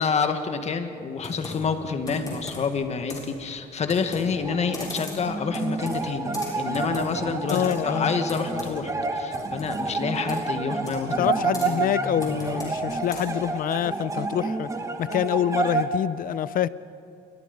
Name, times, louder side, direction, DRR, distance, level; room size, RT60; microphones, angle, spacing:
voice 1, 0.0-11.3, left 5 dB, 40° left, 2.0 m, -28 dB
Computer keyboard, 1.2-13.5, left 2 dB, 20° left, 7.1 m, -40 dB
sound 1, 4.3-15.9, right 3 dB, 20° right, 1.8 m, -29 dB
voice 2, 7.5-8.1 11.2-14.7 15.0-16.7, left 10 dB, 55° left, 0.7 m, -26 dB
28.0 x 22.5 x 5.5 m
cardioid pair, 110°, 17 cm